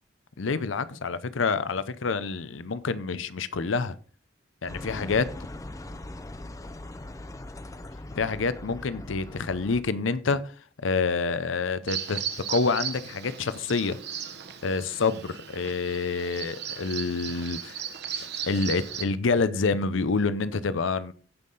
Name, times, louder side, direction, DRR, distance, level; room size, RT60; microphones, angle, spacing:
voice 1, 0.4-3.9 4.6-5.3 8.1-10.4 10.8-12.2 12.5-14.0 14.6-17.8 18.5-21.1, left 4 dB, 85° left, 0.6 m, -27 dB
sound 1, 4.7-9.8, left 1 dB, 15° left, 0.6 m, -40 dB
Bird vocalization bird call bird song, 11.9-19.0, right 8 dB, 60° right, 1.2 m, -36 dB
16.0 x 5.5 x 4.0 m
head